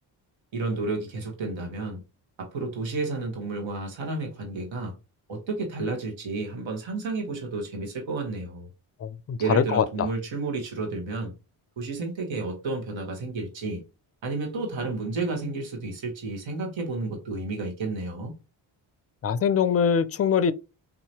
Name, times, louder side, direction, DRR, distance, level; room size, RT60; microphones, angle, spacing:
voice 1, 0.5-2.0 2.4-4.9 5.3-8.7 9.4-11.3 11.8-13.8 14.2-18.3, right 3 dB, 70° right, 1.4 m, -31 dB
voice 2, 9.0-10.1 19.2-20.5, left 7 dB, 30° left, 0.4 m, -23 dB
3.9 x 2.8 x 2.9 m
supercardioid pair, 50°, 48 cm